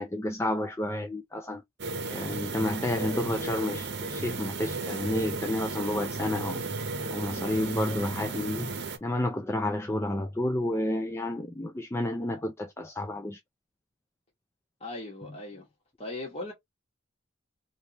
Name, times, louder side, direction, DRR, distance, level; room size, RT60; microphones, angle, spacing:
voice 1, 0.0-1.6 2.1-6.6 7.1-8.7 9.0-13.4, left 1 dB, 15° left, 0.4 m, -30 dB
sound 1, 1.8-9.0, right 3 dB, 55° right, 0.8 m, -34 dB
voice 2, 14.8-15.7 16.0-16.5, left 2 dB, 30° left, 1.2 m, -38 dB
3.4 x 2.8 x 2.9 m
head